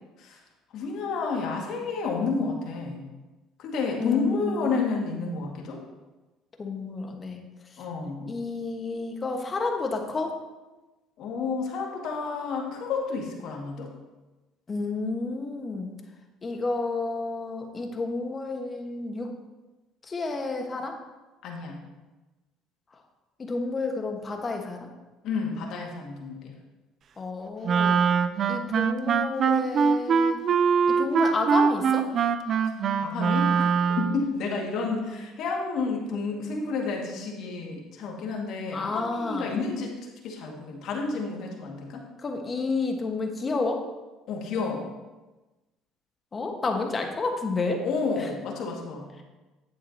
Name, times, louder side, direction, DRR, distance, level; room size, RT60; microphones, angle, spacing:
voice 1, 0.7-3.0 3.6-5.8 7.8-8.3 11.2-13.9 21.4-21.8 25.2-26.5 32.6-32.7 33.0-33.7 34.0-39.9 40.2-42.0 44.3-44.9 47.8-49.1, left 4 dB, 65° left, 0 dB, 2.1 m, -30 dB
voice 2, 4.0-4.8 6.6-7.4 8.3-10.3 14.7-15.9 16.4-19.3 20.1-21.0 23.4-24.9 27.2-28.1 28.5-30.4 30.9-32.1 38.7-39.6 42.2-43.8 46.3-47.8, left 3 dB, 30° left, 3 dB, 1.5 m, -30 dB
Wind instrument woodwind instrument, 27.6-34.3, right 6 dB, 50° right, 0.4 m, -23 dB
10.0 x 8.3 x 2.9 m, 1.1 s
supercardioid pair, 75°, 0 cm